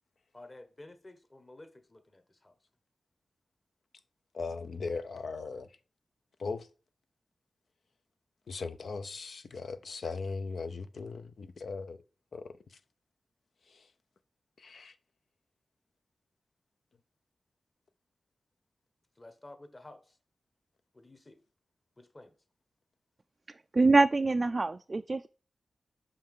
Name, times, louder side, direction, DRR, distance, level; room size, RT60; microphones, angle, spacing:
voice 1, 0.3-2.6 19.2-20.2 20.9-21.4 22.0-22.3, left 2 dB, 30° left, 1.1 m, -52 dB
voice 2, 4.3-5.7 6.4-6.7 8.5-12.0 12.3-12.5 13.7-13.9 14.6-14.9, left 4 dB, 75° left, 0.6 m, -38 dB
voice 3, 23.7-25.3, right 3 dB, 40° right, 0.3 m, -24 dB
5.9 x 5.5 x 3.6 m
cardioid pair, 70°, 0 cm